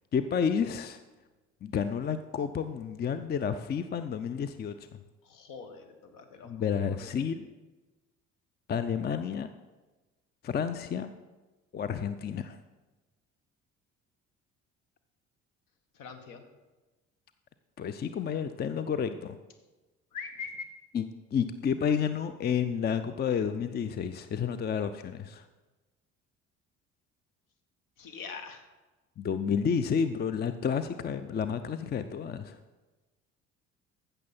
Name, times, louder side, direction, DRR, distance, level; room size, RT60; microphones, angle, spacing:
voice 1, 0.1-1.0 1.6-5.0 6.4-7.5 8.7-9.5 10.4-11.1 11.7-12.6 17.8-19.4 20.9-21.0 21.3-25.5 29.2-32.6, left 7 dB, 25° left, 11 dB, 0.5 m, -30 dB
voice 2, 5.2-7.1 15.9-16.4 20.1-20.6 28.0-28.6, left 5 dB, 60° left, 8 dB, 1.5 m, -43 dB
14.5 x 6.7 x 4.3 m, 1.2 s
figure-of-eight pair, 50°, 37 cm